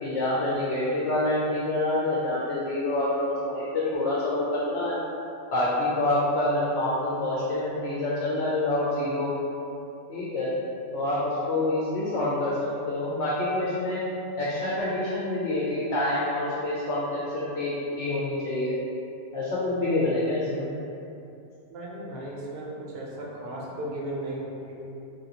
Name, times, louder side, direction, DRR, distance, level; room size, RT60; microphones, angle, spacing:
voice 1, 0.0-3.7 3.9-5.0 5.5-9.3 10.1-10.5 10.9-12.6 12.9-14.0 14.4-17.7 18.0-18.8 19.3-20.7, left 1 dB, 75° left, -7 dB, 0.9 m, -27 dB
voice 2, 21.7-24.7, right 1 dB, 65° right, -4 dB, 0.8 m, -35 dB
3.3 x 2.4 x 2.8 m, 2.7 s
omnidirectional pair, 1.2 m